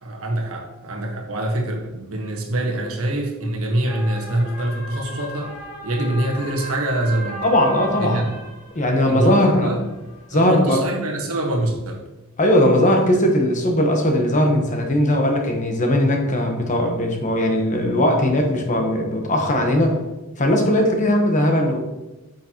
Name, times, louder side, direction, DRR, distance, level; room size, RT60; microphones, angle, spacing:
voice 1, 0.0-5.5 5.8-7.4 8.0-8.3 9.0-9.8 10.3-12.0, right 1 dB, 70° right, 2 dB, 1.5 m, -24 dB
sound 1, 3.9-10.3, right 1 dB, 75° left, 2.3 m, -37 dB
voice 2, 7.4-8.2 8.7-9.7 10.3-10.8 12.4-20.0 20.4-21.8, left 1 dB, 35° left, 3 dB, 1.1 m, -19 dB
9.2 x 6.1 x 3.0 m, 1.1 s
head